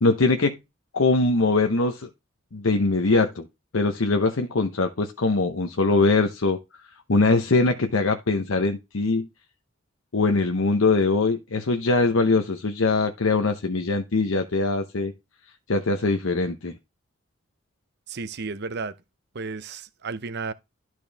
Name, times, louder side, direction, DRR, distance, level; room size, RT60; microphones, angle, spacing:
voice 1, 0.0-0.6 0.9-2.1 2.5-3.5 3.7-6.6 7.1-9.3 10.1-15.1 15.7-16.8, left 3 dB, 85° left, 0.9 m, -22 dB
voice 2, 18.1-19.0 19.3-20.5, right 4 dB, 55° right, 0.7 m, -33 dB
12.5 x 4.6 x 3.4 m
head